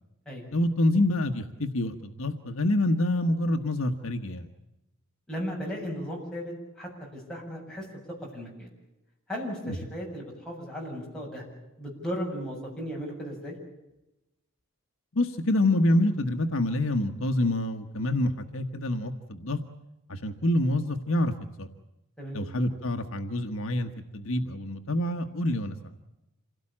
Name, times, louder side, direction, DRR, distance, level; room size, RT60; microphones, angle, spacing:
voice 1, 0.5-4.5 9.7-9.8 15.1-19.6 20.1-21.3 21.6-21.7 22.3-25.8, left 1 dB, 65° left, 6 dB, 1.3 m, -26 dB
voice 2, 5.3-7.8 8.3-8.7 9.3-11.4 11.8-13.5 22.2-22.4, equal, 5° left, -3 dB, 7.6 m, -36 dB
27.0 x 17.5 x 8.7 m, 0.96 s
head